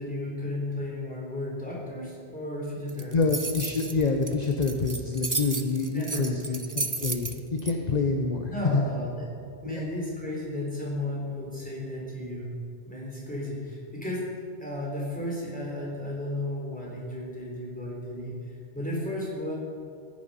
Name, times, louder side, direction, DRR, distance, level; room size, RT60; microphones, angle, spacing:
voice 1, 0.0-3.2 5.9-6.7 8.5-12.5 12.8-14.2 14.6-18.4 18.7-19.6, left 1 dB, 5° left, -5 dB, 3.8 m, -34 dB
sound 1, 2.9-7.7, right 3 dB, 25° right, 0.5 m, -33 dB
voice 2, 3.1-8.8 9.6-9.8, left 4 dB, 40° left, 4 dB, 0.9 m, -27 dB
15.0 x 9.7 x 5.6 m, 2.4 s
omnidirectional pair, 1.2 m